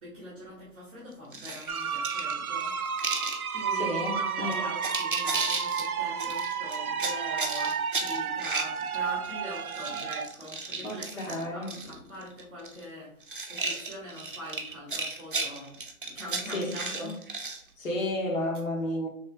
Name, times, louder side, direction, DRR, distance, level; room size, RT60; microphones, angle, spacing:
voice 1, 0.0-2.7 3.5-17.2, equal, 10° right, 0.7 m, -43 dB
sound 1, 1.3-3.4 4.1-4.2 4.5-5.9 6.2-9.3 9.6-11.9 12.2-12.8 13.2-17.6, right 3 dB, 40° right, 0.4 m, -34 dB
sound 2, 1.7-10.3, right 6 dB, 85° right, 0.6 m, -32 dB
voice 2, 3.7-4.7 5.3-5.4 10.8-11.7 16.5-17.1 17.8-19.1, left 1 dB, 65° left, 1.3 m, -32 dB
3.6 x 3.2 x 3.4 m
hypercardioid pair, 160°, 43 cm